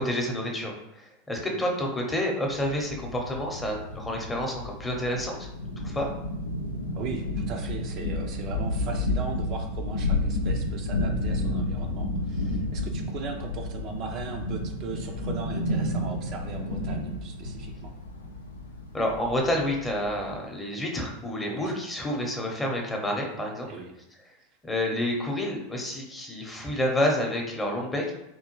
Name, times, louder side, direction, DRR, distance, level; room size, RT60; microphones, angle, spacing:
voice 1, 0.0-5.5 5.8-6.1 18.9-23.7 24.6-28.1, left 1 dB, 15° left, 0 dB, 0.8 m, -29 dB
sound 1, 2.5-20.3, left 1 dB, 80° left, 0.4 m, -31 dB
voice 2, 6.9-17.9 21.4-21.7 23.7-23.9, right 5 dB, 45° right, 2 dB, 0.4 m, -38 dB
3.5 x 2.2 x 3.0 m, 0.85 s
figure-of-eight pair, 90°, 0 cm